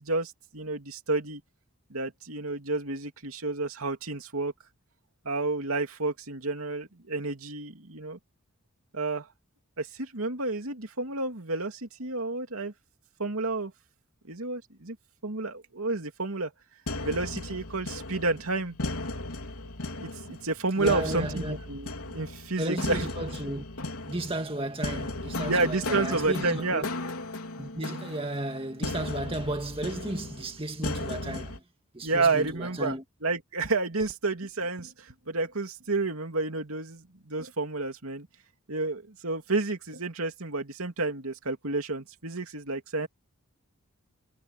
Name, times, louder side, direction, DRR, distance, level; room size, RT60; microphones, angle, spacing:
voice 1, 0.0-1.4 1.9-4.5 5.2-8.2 8.9-9.3 9.8-12.7 13.2-13.7 14.2-15.0 15.2-16.5 17.0-18.8 20.0-23.1 25.5-26.8 32.0-38.3 38.7-43.1, right 3 dB, 75° right, 2.8 m, -30 dB
sound 1, 16.9-31.6, left 2 dB, 80° left, 3.7 m, -36 dB
voice 2, 20.8-21.6 22.6-23.6 24.1-26.9 27.6-31.6 31.9-33.0, right 1 dB, 25° right, 1.9 m, -34 dB
head